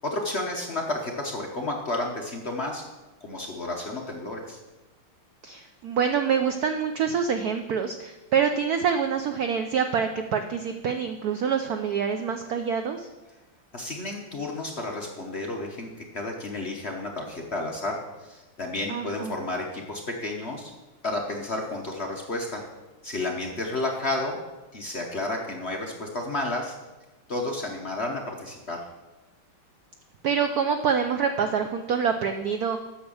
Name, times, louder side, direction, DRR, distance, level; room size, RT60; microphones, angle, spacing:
voice 1, 0.0-2.8 3.2-4.6 13.7-20.7 21.0-22.7 23.0-24.4 24.7-26.7 27.3-28.8, left 2 dB, 45° left, 0 dB, 0.9 m, -31 dB
voice 2, 5.4-13.1 18.9-19.4 30.2-32.8, right 6 dB, 80° right, 7 dB, 0.8 m, -26 dB
8.7 x 6.7 x 7.0 m, 1.1 s
omnidirectional pair, 2.3 m